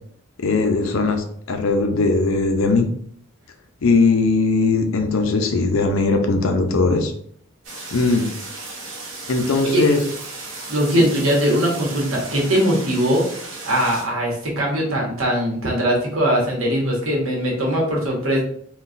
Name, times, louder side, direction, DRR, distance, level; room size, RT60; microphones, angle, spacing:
voice 1, 0.4-2.9 3.8-7.1 7.9-8.3 9.3-10.0 10.9-11.0, left 3 dB, 75° left, 5 dB, 0.6 m, -19 dB
sound 1, 7.6-14.0, right 3 dB, 65° right, 1.0 m, -35 dB
voice 2, 10.7-13.2 13.7-18.4, right 1 dB, 80° right, -2 dB, 1.2 m, -20 dB
3.9 x 2.3 x 2.5 m, 0.63 s
head